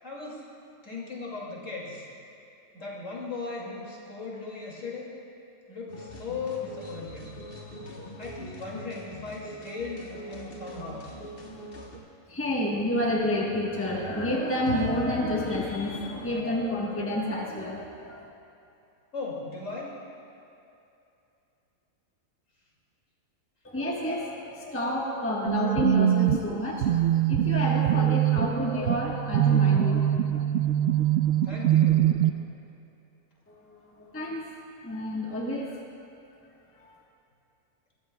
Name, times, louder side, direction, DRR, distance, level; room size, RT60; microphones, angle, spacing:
voice 1, 0.0-0.4 0.8-2.0 2.7-5.1 5.7-7.3 7.8-11.1 19.1-19.9 31.4-32.1, left 3 dB, 60° left, -4 dB, 3.0 m, -37 dB
sound 1, 5.9-12.0, equal, 40° left, 1.4 m, -43 dB
voice 2, 12.3-18.3 23.6-31.5 31.9-32.0 33.5-34.5 34.8-35.8 36.8-36.9, left 1 dB, 10° left, -3 dB, 1.2 m, -30 dB
sound 2, 14.7-17.9, left 10 dB, 80° left, 1.0 m, -39 dB
sound 3, 25.5-32.3, right 11 dB, 65° right, 0.8 m, -23 dB
21.5 x 14.5 x 2.3 m, 2.7 s
omnidirectional pair, 1.5 m